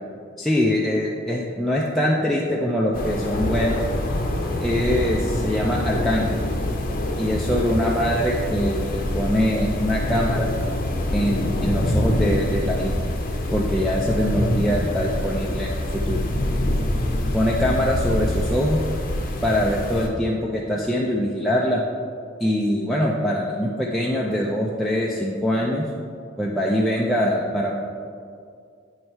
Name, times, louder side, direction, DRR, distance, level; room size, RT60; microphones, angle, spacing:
voice 1, 0.4-3.8 4.6-6.4 7.2-10.5 11.1-12.9 13.5-16.2 17.3-18.8 19.4-21.8 22.4-25.8 26.4-27.7, equal, ahead, -4 dB, 0.4 m, -23 dB
sound 1, 2.9-20.1, left 1 dB, 45° left, 0.7 m, -25 dB
9.4 x 3.2 x 4.4 m, 2.3 s
head